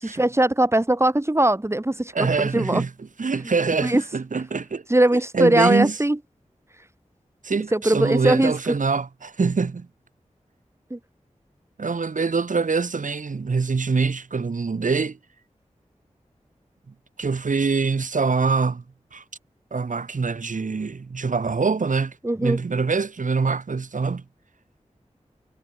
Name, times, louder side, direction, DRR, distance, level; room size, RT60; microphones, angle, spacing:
voice 1, 0.0-2.8 3.8-4.0 4.9-6.2 7.7-8.5 10.9-11.0 22.2-22.6, right 1 dB, 20° right, 6.9 m, -20 dB
voice 2, 2.1-4.8 5.3-6.0 7.4-9.9 11.8-15.2 17.2-18.8 19.1-19.2 19.7-24.2, right 4 dB, 85° right, 6.3 m, -24 dB
wide cardioid pair, 90°, 13 cm